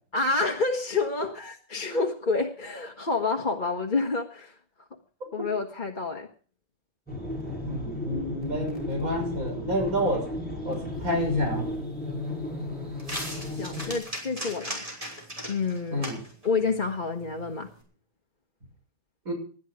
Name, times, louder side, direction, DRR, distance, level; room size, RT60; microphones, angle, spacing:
voice 1, 0.1-4.6 5.3-6.3 13.6-14.8 15.5-16.0 16.4-17.7, left 3 dB, 35° left, 1.5 m, -28 dB
sound 1, 7.1-14.0, left 1 dB, 5° left, 7.2 m, -34 dB
voice 2, 7.6-10.3 10.6-11.7 15.9-16.2 19.2-19.3, equal, 70° right, 6.6 m, -29 dB
sound 2, 10.9-17.8, equal, 25° right, 6.1 m, -40 dB
21.0 x 12.0 x 5.1 m
omnidirectional pair, 1.5 m